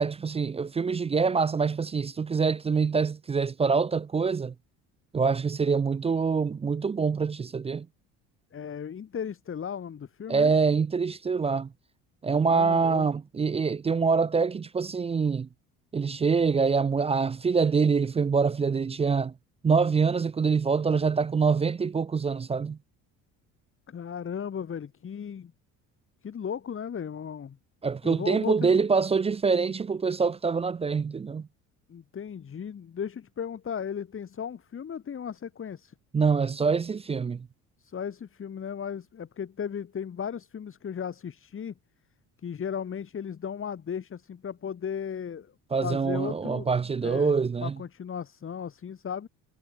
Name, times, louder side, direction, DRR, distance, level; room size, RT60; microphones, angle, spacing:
voice 1, 0.0-4.5 5.1-7.9 10.3-11.7 12.2-15.5 15.9-19.3 19.6-22.8 27.8-31.5 36.1-37.5 45.7-47.7, right 5 dB, 20° right, 0.4 m, -25 dB
voice 2, 8.5-10.5 12.4-13.1 23.9-25.5 26.2-27.6 28.0-28.8 31.9-35.9 37.8-41.7 42.4-45.5 45.8-46.7 47.0-49.3, left 7 dB, 40° left, 2.5 m, -36 dB
supercardioid pair, 85°, 34 cm